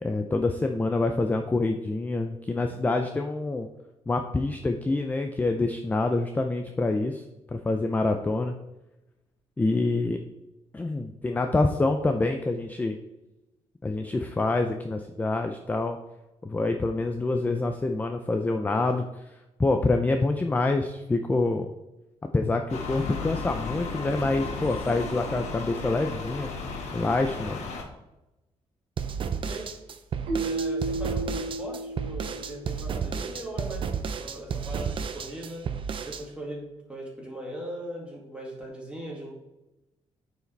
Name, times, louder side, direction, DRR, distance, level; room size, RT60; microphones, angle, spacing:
voice 1, 0.0-3.7 4.1-7.2 7.5-8.5 9.6-10.2 10.7-13.0 13.8-16.0 16.4-19.0 19.6-21.7 22.3-26.5 26.9-27.6, left 2 dB, 15° left, 5 dB, 0.5 m, -26 dB
sound 1, 22.7-27.8, left 4 dB, 80° left, 1.3 m, -35 dB
sound 2, 29.0-36.2, right 6 dB, 50° right, 0.6 m, -32 dB
Keyboard (musical), 30.3-33.1, right 2 dB, 85° right, 2.2 m, -33 dB
voice 2, 30.4-33.9 34.1-35.7 36.0-36.6 36.9-39.3, right 1 dB, 10° right, -3 dB, 2.3 m, -39 dB
9.1 x 4.9 x 3.4 m, 0.98 s
cardioid pair, 130°, 12 cm